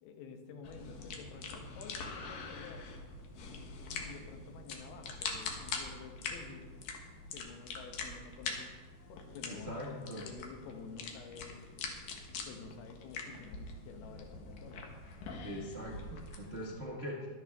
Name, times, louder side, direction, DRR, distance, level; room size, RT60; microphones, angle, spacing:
voice 1, 0.0-2.9 3.9-6.6 7.3-8.7 9.1-11.7 12.4-14.9, left 5 dB, 85° left, 5 dB, 3.1 m, -50 dB
sound 1, 0.6-16.7, left 4 dB, 65° left, 2.8 m, -44 dB
voice 2, 9.5-10.2 15.4-17.3, equal, 50° right, -4 dB, 0.7 m, -42 dB
23.0 x 8.1 x 3.6 m, 1.5 s
omnidirectional pair, 4.4 m